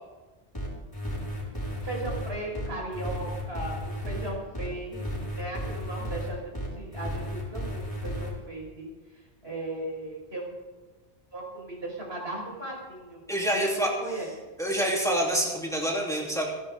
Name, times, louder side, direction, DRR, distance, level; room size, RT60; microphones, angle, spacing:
sound 1, 0.5-8.3, equal, 20° left, 5.2 m, -34 dB
voice 1, 1.8-8.9 9.4-10.5 11.3-13.3 13.5-13.6 14.0-14.3, right 1 dB, 75° right, -2 dB, 5.4 m, -37 dB
voice 2, 13.3-14.3 14.6-16.4, right 1 dB, 5° left, -2 dB, 3.2 m, -27 dB
29.0 x 11.0 x 3.7 m, 1.3 s
omnidirectional pair, 1.1 m